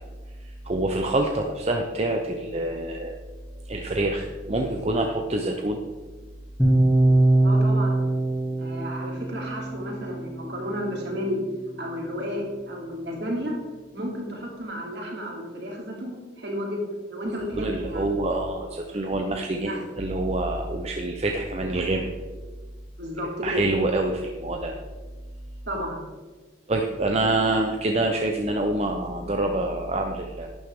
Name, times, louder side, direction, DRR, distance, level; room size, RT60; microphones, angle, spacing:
voice 1, 0.4-3.1 3.7-5.8 17.5-22.1 23.4-24.7 26.7-30.5, right 2 dB, 30° right, 3 dB, 0.7 m, -26 dB
sound 1, 6.6-10.7, right 2 dB, 5° left, 1.6 m, -22 dB
voice 2, 7.4-8.0 8.6-11.4 11.8-13.5 13.9-18.1 19.6-19.8 23.0-23.6 25.7-26.0, equal, 60° right, -2 dB, 3.0 m, -32 dB
11.5 x 10.0 x 3.6 m, 1.4 s
head